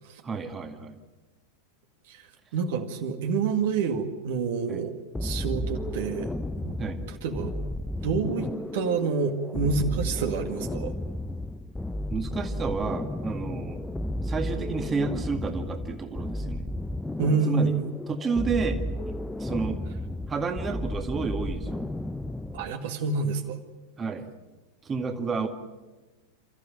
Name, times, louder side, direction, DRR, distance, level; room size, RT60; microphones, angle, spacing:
voice 1, 0.2-1.0 4.7-4.8 6.8-7.0 12.1-13.8 14.2-16.6 17.4-17.7 18.1-18.8 19.1-19.2 19.4-19.8 20.3-21.8 24.0-24.3 24.8-25.5, right 4 dB, 20° right, 6 dB, 2.0 m, -30 dB
voice 2, 2.5-4.9 5.2-6.3 6.6-6.8 7.1-7.5 8.0-10.9 17.2-17.9 22.5-23.6, right 5 dB, 55° right, 5 dB, 2.1 m, -28 dB
sound 1, 5.1-22.8, left 1 dB, 5° left, 0.8 m, -33 dB
29.5 x 14.5 x 9.1 m, 1.2 s
figure-of-eight pair, 90°, 0 cm